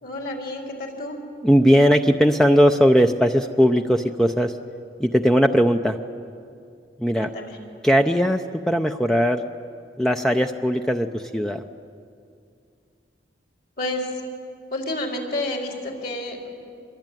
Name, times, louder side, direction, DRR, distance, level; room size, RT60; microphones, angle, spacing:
voice 1, 0.0-1.2 7.2-7.6 13.8-14.1 14.7-16.5, left 1 dB, 55° left, 1 dB, 4.2 m, -30 dB
voice 2, 1.4-4.6 5.0-6.0 7.0-7.3 7.8-9.4 10.0-11.6, equal, 5° left, 5 dB, 0.6 m, -19 dB
25.5 x 23.0 x 9.1 m, 2.4 s
head